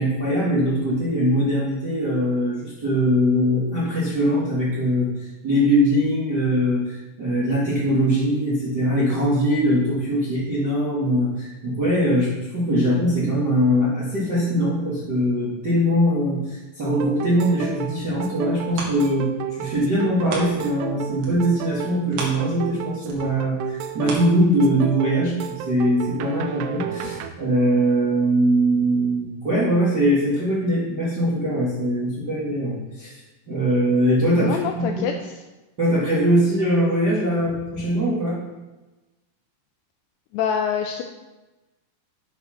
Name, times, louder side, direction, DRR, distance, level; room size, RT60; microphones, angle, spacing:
voice 1, 0.0-33.2 33.5-34.9 35.8-38.4, equal, 45° right, -8 dB, 1.3 m, -21 dB
sound 1, 16.8-27.3, right 9 dB, 85° right, 3.2 m, -32 dB
sound 2, 18.0-20.9 21.2-25.0 25.5-25.6, right 3 dB, 70° right, 3.7 m, -36 dB
voice 2, 34.4-35.4 40.3-41.0, left 7 dB, 85° left, 5 dB, 2.5 m, -26 dB
8.2 x 6.4 x 5.9 m, 1.1 s
omnidirectional pair, 5.5 m